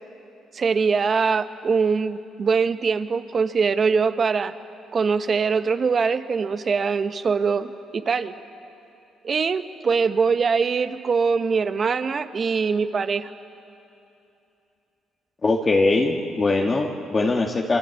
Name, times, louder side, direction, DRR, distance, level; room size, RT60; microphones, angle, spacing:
voice 1, 0.5-4.5 4.9-8.3 9.2-13.3, right 5 dB, 45° right, 10 dB, 1.3 m, -22 dB
voice 2, 15.4-17.8, left 3 dB, 35° left, 0 dB, 1.9 m, -21 dB
27.0 x 24.5 x 8.5 m, 2.7 s
supercardioid pair, 70°, 0 cm